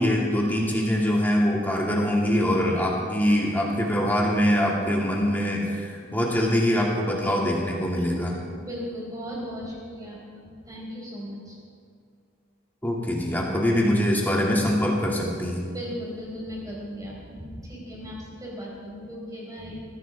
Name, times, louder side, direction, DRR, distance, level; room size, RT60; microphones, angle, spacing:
voice 1, 0.0-8.4 12.8-15.6, equal, 10° left, -3 dB, 2.4 m, -23 dB
voice 2, 8.6-11.6 13.4-13.7 15.7-19.8, equal, 15° right, -4 dB, 4.8 m, -37 dB
21.0 x 15.0 x 3.6 m, 2.2 s
head